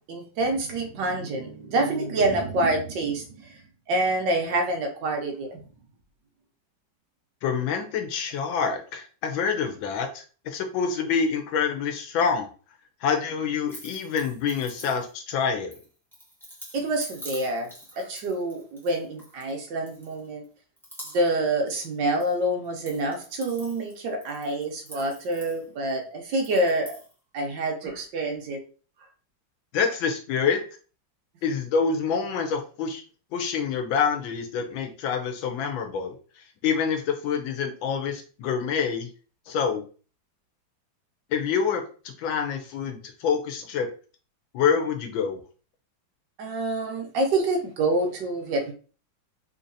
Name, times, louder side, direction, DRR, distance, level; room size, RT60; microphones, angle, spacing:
voice 1, 0.1-3.6 3.9-5.6 16.7-17.7 18.0-20.4 21.1-26.9 27.3-28.6 46.4-48.7, right 2 dB, 70° right, 2 dB, 1.4 m, -27 dB
voice 2, 7.4-12.5 13.0-15.7 29.7-30.6 31.4-33.0 33.3-36.2 36.6-39.1 39.5-39.8 41.3-43.9 44.5-45.4, left 6 dB, 80° left, 5 dB, 1.4 m, -26 dB
sound 1, 13.7-15.3 15.7-19.5 19.9-20.4 20.8-22.3 22.6-25.9 26.4-27.1, equal, ahead, 0.9 m, -46 dB
3.7 x 2.8 x 2.6 m, 0.38 s
omnidirectional pair, 2.1 m